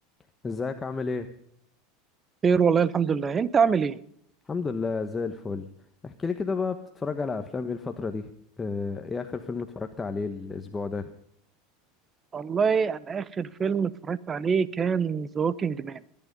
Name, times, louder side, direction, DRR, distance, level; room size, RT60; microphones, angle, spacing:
voice 1, 0.4-1.3 4.5-5.7 6.0-8.3 8.6-11.1, left 4 dB, 20° left, 7 dB, 1.2 m, -31 dB
voice 2, 2.4-4.0 12.3-16.0, right 6 dB, 25° right, 19 dB, 0.9 m, -25 dB
19.5 x 11.0 x 5.3 m, 0.69 s
supercardioid pair, 110°, 0 cm